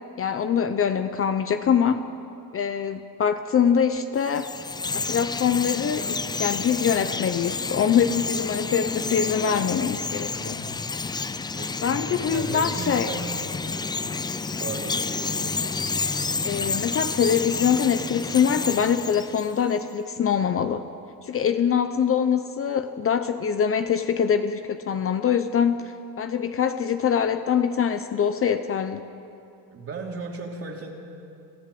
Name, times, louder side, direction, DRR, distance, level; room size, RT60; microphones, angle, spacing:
voice 1, 0.2-2.0 2.5-4.5 4.9-10.6 11.8-13.1 16.4-20.8 21.2-29.0, left 7 dB, 35° left, 9 dB, 0.8 m, -24 dB
Chirp tweet, 4.2-19.8, left 4 dB, 10° left, 0.4 m, -30 dB
voice 2, 10.3-10.7 11.6-13.4 14.6-15.6 29.7-30.9, right 3 dB, 35° right, 1 dB, 3.1 m, -36 dB
26.0 x 14.5 x 7.8 m, 2.6 s
cardioid pair, 130°, 41 cm